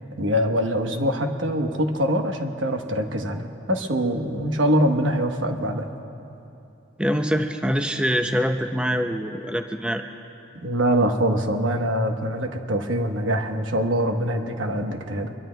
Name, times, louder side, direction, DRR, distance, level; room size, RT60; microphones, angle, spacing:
voice 1, 0.2-5.9 10.6-15.3, equal, 80° right, 4 dB, 1.1 m, -24 dB
voice 2, 7.0-10.0, equal, 5° right, 5 dB, 0.5 m, -24 dB
24.5 x 22.5 x 2.3 m, 2.8 s
head